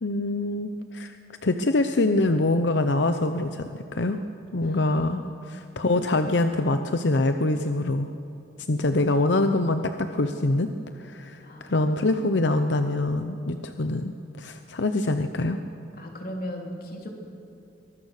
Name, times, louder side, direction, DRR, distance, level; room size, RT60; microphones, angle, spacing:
voice 1, 0.0-1.2 1.4-4.2 4.5-5.2 5.5-8.1 8.7-10.7 10.9-15.6, left 2 dB, 85° left, 8 dB, 0.8 m, -24 dB
voice 2, 4.6-5.4 11.4-12.3 16.0-17.1, equal, 55° left, 1 dB, 3.2 m, -38 dB
23.5 x 20.0 x 6.6 m, 2.6 s
head